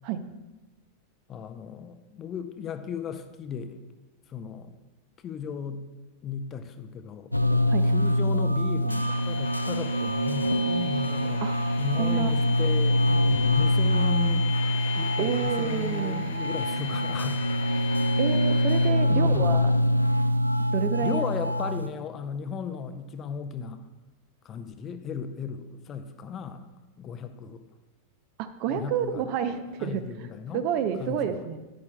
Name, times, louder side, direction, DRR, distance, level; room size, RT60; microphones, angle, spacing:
voice 1, 1.3-3.8 4.3-4.7 5.2-5.9 6.2-11.4 11.8-14.5 14.9-17.4 19.1-19.6 21.0-23.8 24.4-26.7 27.0-27.7 28.7-29.2 29.8-30.6 31.0-31.4, left 7 dB, 30° left, 9 dB, 0.5 m, -35 dB
sound 1, 7.3-21.9, left 1 dB, 90° left, 0.4 m, -24 dB
sound 2, 8.9-18.9, left 8 dB, 65° left, 1.0 m, -38 dB
voice 2, 12.0-12.3 15.2-16.2 18.2-19.6 20.7-21.3 28.4-30.3 30.5-31.6, right 9 dB, 45° right, 10 dB, 0.5 m, -29 dB
11.0 x 9.5 x 2.3 m, 1.1 s
figure-of-eight pair, 90°, 0 cm